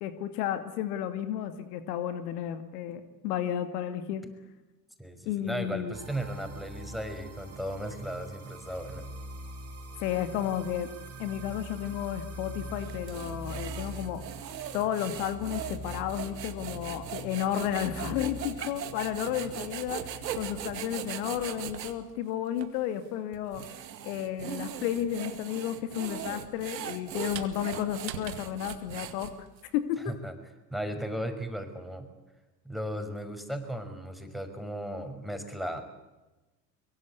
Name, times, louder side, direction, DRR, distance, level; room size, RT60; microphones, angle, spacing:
voice 1, 0.0-4.3 5.3-6.0 10.0-10.9 11.2-14.2 14.7-20.0 20.3-23.6 24.0-29.3 29.7-30.1, left 10 dB, 70° left, 10 dB, 2.4 m, -32 dB
voice 2, 5.0-9.1 30.1-30.3 30.7-32.1 32.6-35.8, equal, ahead, 7 dB, 5.9 m, -36 dB
sound 1, 5.9-21.1, right 1 dB, 30° right, 4.3 m, -43 dB
sound 2, 12.8-22.0 22.6-22.7 23.3-29.6, right 10 dB, 85° right, 2.2 m, -39 dB
24.0 x 23.5 x 8.3 m, 1.1 s
hypercardioid pair, 75°, 49 cm